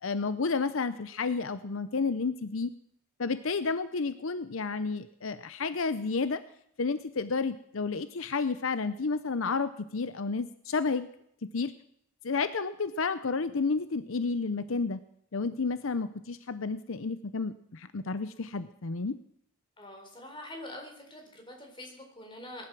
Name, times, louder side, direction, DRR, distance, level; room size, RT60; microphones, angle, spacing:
voice 1, 0.0-2.7 3.2-6.4 6.8-11.1 11.5-11.7 12.2-15.0 15.3-19.2, left 4 dB, 75° left, 13 dB, 0.7 m, -31 dB
voice 2, 19.8-22.7, left 1 dB, 25° left, 2 dB, 4.0 m, -45 dB
19.5 x 11.0 x 6.1 m, 0.71 s
head